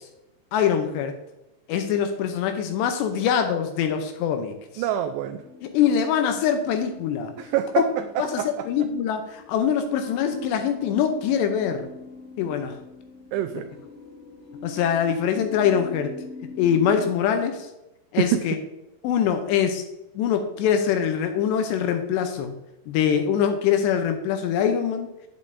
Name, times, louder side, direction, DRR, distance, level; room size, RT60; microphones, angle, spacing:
voice 1, 0.5-1.2 1.7-4.8 5.6-7.3 8.2-11.9 12.4-12.8 14.6-16.2 16.6-17.7 18.1-18.6 19.0-19.8 20.2-22.5 22.9-25.1, left 8 dB, 80° left, 6 dB, 2.7 m, -23 dB
voice 2, 4.8-5.4 7.4-8.7 13.3-13.6 18.2-18.4, right 12 dB, 85° right, 8 dB, 2.5 m, -26 dB
sound 1, 5.3-17.1, left 4 dB, 65° left, 2.9 m, -43 dB
8.6 x 8.5 x 2.6 m, 0.93 s
omnidirectional pair, 5.2 m